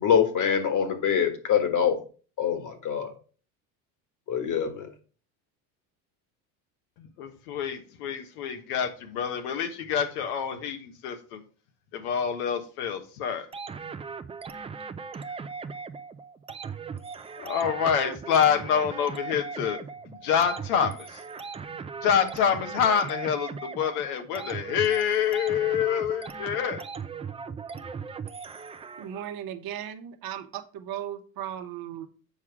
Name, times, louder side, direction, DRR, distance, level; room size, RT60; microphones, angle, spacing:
voice 1, 0.0-2.0 2.4-3.1 4.3-4.9, left 7 dB, 45° left, 8 dB, 1.7 m, -24 dB
voice 2, 7.0-11.4 11.9-13.5 17.4-19.8 20.1-21.2 22.0-26.8, left 8 dB, 80° left, 7 dB, 1.3 m, -27 dB
sound 1, 13.5-29.3, right 5 dB, 15° right, 0.4 m, -39 dB
voice 3, 29.0-32.1, right 10 dB, 55° right, 8 dB, 1.1 m, -36 dB
7.4 x 4.7 x 4.6 m, 0.39 s
supercardioid pair, 90°, 44 cm